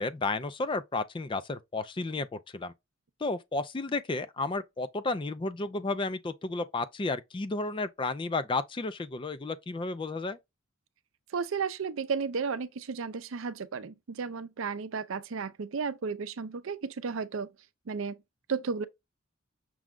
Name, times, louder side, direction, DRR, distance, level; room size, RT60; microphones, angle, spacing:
voice 1, 0.0-2.7 3.2-10.4, left 3 dB, 25° left, 0.4 m, -32 dB
voice 2, 11.3-17.5 17.9-18.2 18.5-18.9, right 5 dB, 75° right, 0.5 m, -33 dB
6.1 x 2.2 x 3.6 m
head